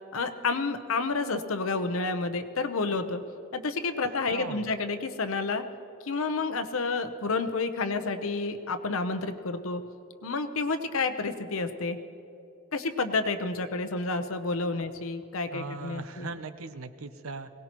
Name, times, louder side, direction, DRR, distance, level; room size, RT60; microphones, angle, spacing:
voice 1, 0.1-3.2 3.5-5.6 6.0-9.8 10.2-12.0 12.7-16.3, left 3 dB, 85° left, 9 dB, 0.8 m, -30 dB
voice 2, 4.3-4.7 15.5-17.5, right 4 dB, 85° right, 11 dB, 0.7 m, -38 dB
22.0 x 18.0 x 3.0 m, 2.8 s
head